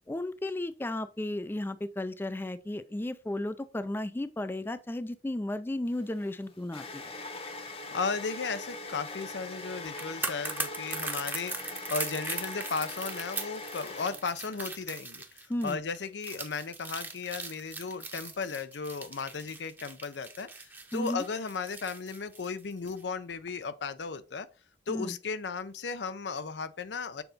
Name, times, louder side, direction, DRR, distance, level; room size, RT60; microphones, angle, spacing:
voice 1, 0.0-7.0 15.5-15.8 20.9-21.2 24.9-25.2, left 1 dB, 15° left, 0.4 m, -34 dB
sound 1, 5.9-14.6, left 2 dB, 35° left, 0.9 m, -42 dB
voice 2, 7.9-24.5 24.9-27.2, left 4 dB, 80° left, 0.6 m, -35 dB
sound 2, 9.8-23.0 23.3-23.5, right 3 dB, 10° right, 0.8 m, -39 dB
6.9 x 3.9 x 4.0 m
head